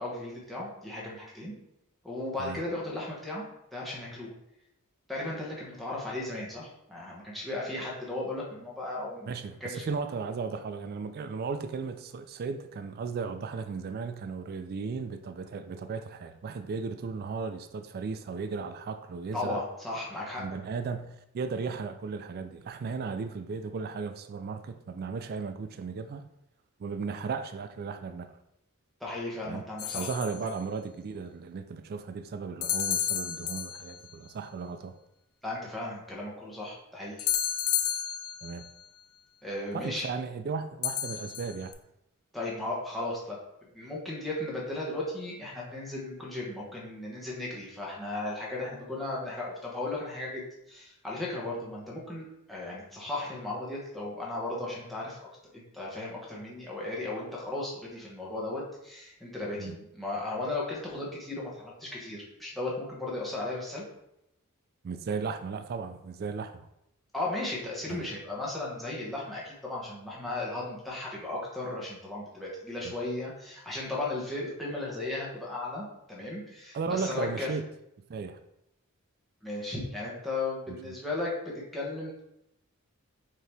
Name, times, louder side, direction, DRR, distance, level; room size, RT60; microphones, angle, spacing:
voice 1, 0.0-1.5 2.0-3.4 3.7-4.3 5.1-9.3 9.6-9.8 19.3-20.4 29.0-30.1 35.4-37.3 39.4-40.1 42.3-43.4 43.7-63.8 67.1-77.5 79.4-82.2, left 2 dB, ahead, -6 dB, 1.0 m, -36 dB
voice 2, 9.2-19.6 20.4-26.3 26.8-28.4 29.5-29.6 29.9-34.9 38.4-38.7 39.7-41.7 59.6-59.8 64.8-66.7 67.9-68.1 72.8-72.9 76.7-77.7 78.1-78.4 80.7-80.8, right 5 dB, 45° right, 9 dB, 0.3 m, -35 dB
sound 1, 29.8-30.5 32.6-34.1 37.2-38.7 40.8-41.7, left 10 dB, 65° left, 0.4 m, -31 dB
4.5 x 2.8 x 3.3 m, 0.81 s
head